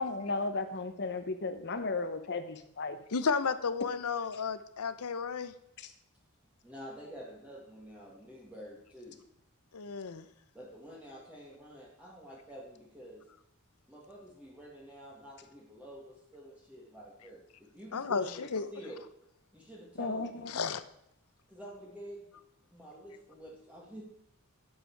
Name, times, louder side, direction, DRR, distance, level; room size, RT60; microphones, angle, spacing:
voice 1, 0.0-3.0 5.8-5.9 20.0-20.5, left 3 dB, 55° left, 9 dB, 1.0 m, -35 dB
voice 2, 3.1-5.5 9.7-10.3 17.9-18.7 20.5-20.8, left 5 dB, 85° left, 13 dB, 0.7 m, -32 dB
voice 3, 6.6-9.2 10.5-13.3 13.9-19.0 19.5-20.4 21.5-22.4 22.7-24.0, equal, 5° right, -4 dB, 1.9 m, -48 dB
11.5 x 8.0 x 4.6 m, 0.78 s
head